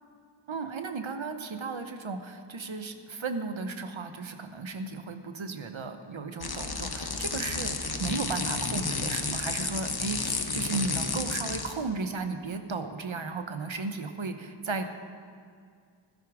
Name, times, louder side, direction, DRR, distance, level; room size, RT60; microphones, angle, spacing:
voice 1, 0.5-14.9, right 4 dB, 90° right, 7 dB, 1.0 m, -35 dB
sound 1, 6.4-11.8, left 4 dB, 55° left, 1.1 m, -31 dB
16.0 x 13.0 x 5.0 m, 2.2 s
wide cardioid pair, 50°, 46 cm